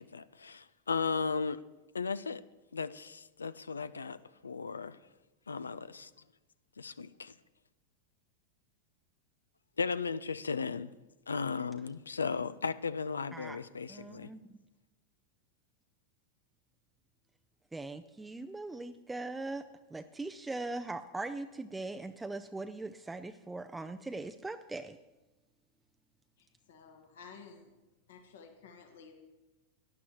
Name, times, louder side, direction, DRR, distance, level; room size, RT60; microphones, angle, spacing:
voice 1, 0.0-1.6 1.9-2.4 2.7-4.2 4.4-5.0 5.5-6.1 6.8-7.3 9.8-10.9 11.3-14.3, left 5 dB, 75° left, 16 dB, 0.3 m, -35 dB
voice 2, 13.9-14.4 17.7-19.6 19.9-25.0, right 2 dB, 10° right, 8 dB, 0.4 m, -40 dB
voice 3, 26.4-27.7 28.1-29.2, left 5 dB, 60° left, 4 dB, 1.4 m, -53 dB
18.0 x 11.0 x 3.0 m, 1.1 s
figure-of-eight pair, 90°, 0 cm